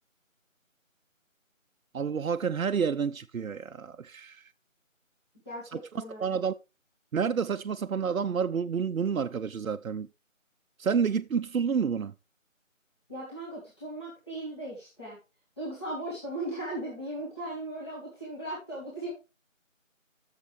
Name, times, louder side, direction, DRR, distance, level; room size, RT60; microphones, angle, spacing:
voice 1, 1.9-4.5 5.7-6.5 7.1-10.1 10.8-12.1, right 6 dB, 85° right, 0.6 m, -29 dB
voice 2, 5.5-6.4 13.1-15.2 15.6-19.1, right 1 dB, 20° left, 2.0 m, -37 dB
12.5 x 6.7 x 3.3 m
figure-of-eight pair, 170°, 40 cm